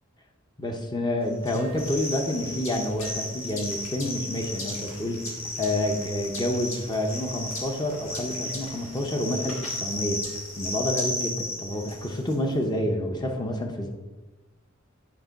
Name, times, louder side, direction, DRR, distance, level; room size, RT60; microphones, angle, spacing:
voice 1, 0.6-10.2 10.6-13.9, left 1 dB, 20° left, 3 dB, 0.6 m, -28 dB
sound 1, 1.4-12.3, left 1 dB, 65° left, 1.6 m, -34 dB
8.6 x 4.3 x 3.9 m, 1.3 s
head